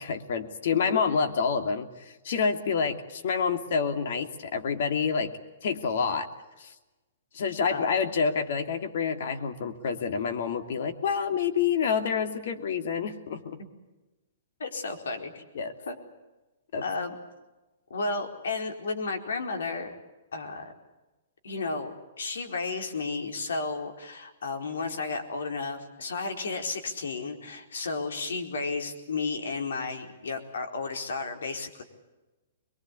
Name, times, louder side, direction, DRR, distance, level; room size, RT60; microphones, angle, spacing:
voice 1, 0.0-5.3 5.6-6.3 6.6-6.7 7.3-13.6 15.5-15.7 16.7-16.8, left 6 dB, 65° left, 6 dB, 2.9 m, -28 dB
voice 2, 14.6-15.4 15.9-16.0 16.8-17.1 17.9-19.9 20.3-20.7 21.4-31.8, left 4 dB, 85° left, 4 dB, 4.5 m, -33 dB
24.0 x 22.5 x 8.4 m, 1.1 s
hypercardioid pair, 140°, 0 cm